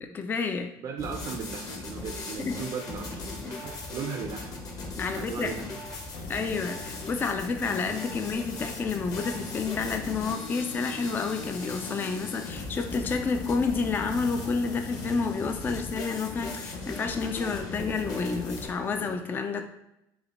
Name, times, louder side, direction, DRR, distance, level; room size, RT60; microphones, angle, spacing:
voice 1, 0.0-0.7 2.5-2.6 3.4-3.6 4.9-5.6 6.3-19.7, left 4 dB, 25° left, 6 dB, 0.3 m, -30 dB
voice 2, 0.8-4.6 5.1-5.8, right 6 dB, 50° right, 4 dB, 0.5 m, -37 dB
sound 1, 1.0-18.7, left 2 dB, 45° left, 1.2 m, -38 dB
sound 2, 6.1-19.1, left 5 dB, 70° left, 0.6 m, -45 dB
5.6 x 2.1 x 4.1 m, 0.85 s
cardioid pair, 125°, 8 cm